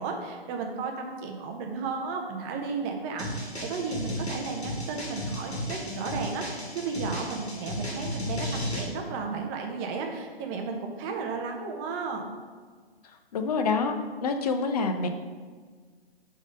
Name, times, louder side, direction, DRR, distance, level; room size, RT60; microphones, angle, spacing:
voice 1, 0.0-12.3, right 4 dB, 15° right, 2 dB, 0.7 m, -34 dB
sound 1, 3.2-8.9, left 1 dB, 85° left, 1.9 m, -34 dB
voice 2, 13.3-13.9 14.2-15.1, left 4 dB, 40° left, 6 dB, 0.8 m, -26 dB
9.8 x 3.7 x 5.3 m, 1.5 s
figure-of-eight pair, 135°, 31 cm